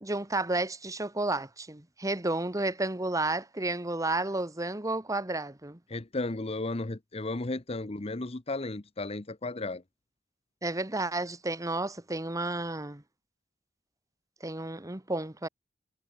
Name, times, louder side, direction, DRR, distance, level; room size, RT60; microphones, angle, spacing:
voice 1, 0.0-5.8 10.6-13.0 14.4-15.5, right 2 dB, 15° right, 1.5 m, -31 dB
voice 2, 5.9-9.8, left 2 dB, 30° left, 0.9 m, -34 dB
head